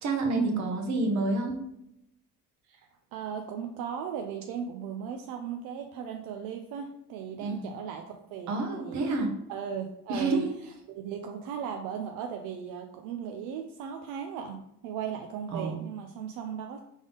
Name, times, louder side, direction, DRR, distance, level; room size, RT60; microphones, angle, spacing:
voice 1, 0.0-1.6 7.4-7.7 8.5-9.3 10.1-10.5 15.5-15.8, right 2 dB, 60° right, 2 dB, 1.0 m, -29 dB
voice 2, 2.7-9.1 9.5-10.4 10.9-16.8, right 7 dB, 85° right, 4 dB, 0.5 m, -36 dB
3.5 x 3.5 x 3.8 m, 0.80 s
cardioid pair, 120°, 32 cm